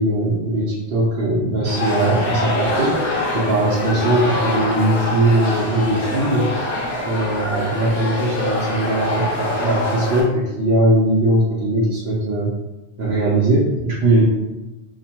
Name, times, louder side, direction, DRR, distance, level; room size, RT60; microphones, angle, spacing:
voice 1, 0.0-3.1 3.3-6.5 7.0-12.5 13.0-14.2, right 1 dB, 75° right, -7 dB, 0.8 m, -19 dB
sound 1, 1.6-10.2, left 1 dB, 85° left, 1.0 m, -24 dB
2.8 x 2.1 x 2.8 m, 1.0 s
omnidirectional pair, 1.0 m